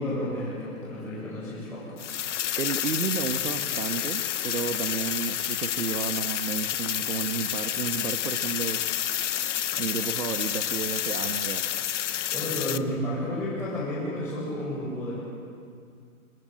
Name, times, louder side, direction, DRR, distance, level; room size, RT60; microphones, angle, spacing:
voice 1, 0.0-1.9 12.3-15.2, left 1 dB, 5° left, -11 dB, 7.8 m, -31 dB
sound 1, 2.0-12.8, left 10 dB, 55° left, 1.1 m, -29 dB
voice 2, 2.6-8.9 9.8-11.7, right 6 dB, 90° right, 6 dB, 1.6 m, -32 dB
26.5 x 25.0 x 7.9 m, 2.2 s
hypercardioid pair, 160°, 43 cm